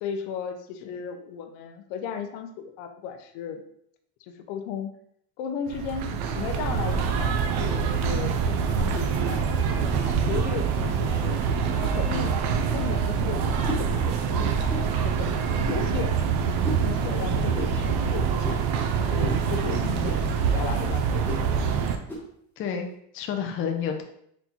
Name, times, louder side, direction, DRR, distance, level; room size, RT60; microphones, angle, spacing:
voice 1, 0.0-3.6 4.2-4.9 5.4-11.4 11.8-12.5 12.7-18.6 19.1-21.2, left 7 dB, 75° left, 6 dB, 0.7 m, -36 dB
sound 1, 5.7-22.0, right 6 dB, 75° right, 0.7 m, -25 dB
sound 2, 10.3-10.5 11.6-11.9 12.7-12.9 13.6-13.9 14.7-14.9 15.6-15.9 16.6-16.9 17.5-17.7 18.4-18.7 19.2-19.5 20.0-20.3 21.2-21.5 22.1-22.3, equal, 5° left, 1.0 m, -35 dB
voice 2, 19.7-20.1 22.6-24.0, left 7 dB, 30° left, 4 dB, 0.4 m, -31 dB
4.1 x 2.2 x 4.3 m, 0.70 s
supercardioid pair, 120°, 48 cm